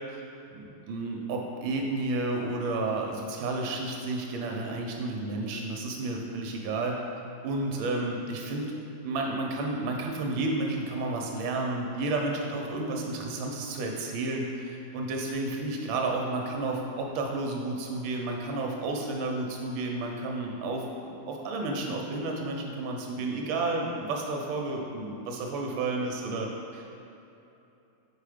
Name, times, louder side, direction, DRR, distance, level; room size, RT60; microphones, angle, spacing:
voice 1, 0.5-7.0 7.4-8.7 9.0-27.0, right 2 dB, 70° right, 1 dB, 1.4 m, -31 dB
5.1 x 4.2 x 5.0 m, 2.8 s
omnidirectional pair, 2.4 m